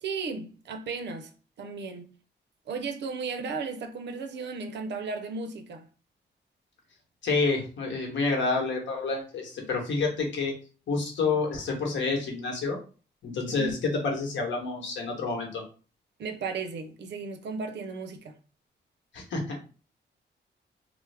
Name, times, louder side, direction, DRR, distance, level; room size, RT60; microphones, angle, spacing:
voice 1, 0.0-1.3 1.6-2.1 2.7-5.9 13.5-13.8 16.2-18.3, right 4 dB, 65° right, 0.5 m, -35 dB
voice 2, 7.2-10.5 10.9-12.8 13.2-15.6 19.1-19.6, left 4 dB, 75° left, 1.1 m, -28 dB
3.3 x 2.0 x 3.3 m
wide cardioid pair, 160°, 19 cm